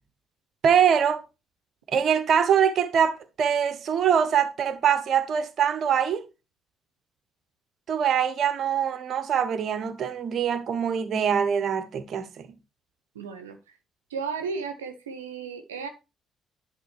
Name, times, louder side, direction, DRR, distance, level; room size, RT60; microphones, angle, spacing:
voice 1, 0.6-1.2 1.9-6.2 7.9-12.5, right 8 dB, 50° right, 0.8 m, -23 dB
voice 2, 13.2-13.6 14.1-15.9, right 5 dB, 80° right, 0.7 m, -34 dB
10.0 x 3.7 x 4.3 m
figure-of-eight pair, 45°, 0 cm